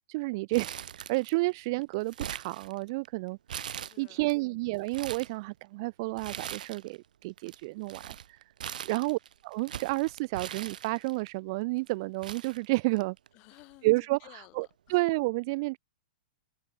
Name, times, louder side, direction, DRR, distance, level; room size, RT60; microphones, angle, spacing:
voice 1, 0.1-3.4 4.0-8.4 8.9-13.2 13.8-14.2 14.6-15.8, right 24 dB, 25° right, 0.3 m, -30 dB
Crumpling crinkling, 0.5-1.5 1.8-3.1 3.5-4.3 4.7-5.3 6.2-7.0 7.2-11.3 11.9-12.0 12.2-13.3 13.6-13.7 14.6-14.9, right 9 dB, 70° right, 0.7 m, -41 dB
voice 2, 3.6-4.3 8.9-9.2 13.3-15.0, left 25 dB, 25° left, 4.1 m, -56 dB
open air
hypercardioid pair, 175°, 5 cm